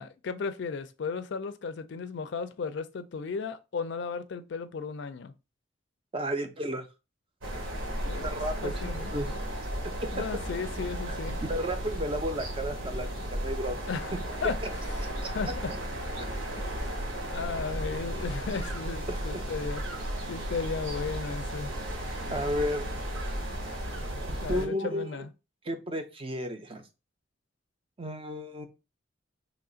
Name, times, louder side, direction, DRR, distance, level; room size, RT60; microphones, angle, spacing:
voice 1, 0.0-5.3 8.1-8.3 8.6-9.1 10.1-11.4 13.9-14.1 14.4-14.6 15.2-15.7 16.6-19.8 20.3-21.7 24.4-25.3, left 5 dB, 60° left, 0.4 m, -35 dB
voice 2, 6.1-6.9 8.2-9.3 10.0-10.1 11.1-13.8 15.2-15.3 19.1-19.4 22.3-22.8 24.3-25.3 25.6-26.8 28.0-28.7, equal, 25° right, 0.4 m, -33 dB
sound 1, 7.4-24.7, equal, 80° right, 0.9 m, -34 dB
3.0 x 2.4 x 3.7 m
head